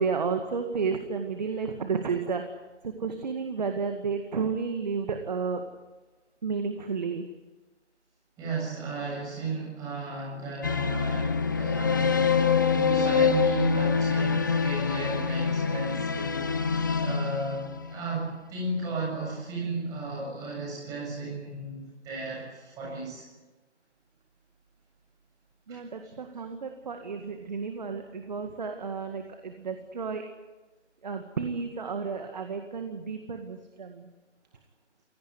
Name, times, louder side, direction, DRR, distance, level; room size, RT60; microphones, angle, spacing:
voice 1, 0.0-2.4 2.8-5.6 6.4-7.3 25.7-30.3 31.0-34.1, right 5 dB, 35° right, 6 dB, 2.1 m, -32 dB
voice 2, 8.4-23.2 25.7-25.8, right 3 dB, 10° right, -4 dB, 7.7 m, -34 dB
sound 1, 10.6-18.1, left 5 dB, 15° left, 0.8 m, -25 dB
27.5 x 18.0 x 9.8 m, 1.2 s
figure-of-eight pair, 155°, 35 cm